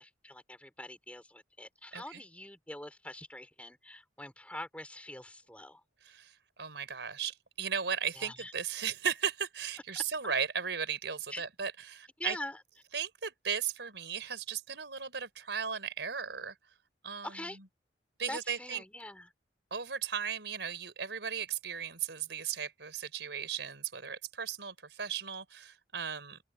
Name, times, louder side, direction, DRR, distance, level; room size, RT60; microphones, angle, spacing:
voice 1, 0.0-5.8 8.1-8.5 9.9-10.0 11.3-11.4 12.2-12.6 17.2-17.6 18.3-19.3, left 1 dB, 5° left, 5.1 m, -44 dB
voice 2, 6.0-12.4 12.9-16.5 17.0-17.6 18.2-18.8 19.7-26.4, right 7 dB, 80° right, 4.4 m, -36 dB
open air
head